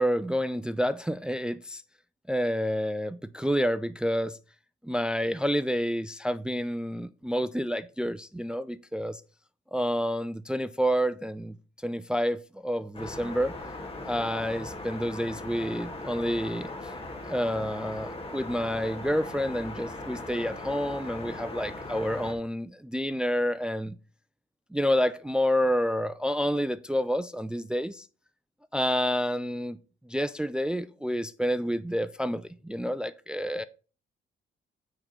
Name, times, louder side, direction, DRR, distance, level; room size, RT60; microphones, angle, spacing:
voice 1, 0.0-1.8 2.3-4.4 4.8-9.2 9.7-11.6 11.8-13.6 14.1-16.7 17.2-24.0 24.7-28.1 28.7-29.8 30.1-33.6, equal, 5° right, 0.3 m, -29 dB
sound 1, 12.9-22.3, left 2 dB, 30° left, 1.8 m, -39 dB
8.8 x 3.7 x 5.2 m
cardioid pair, 90°, 20 cm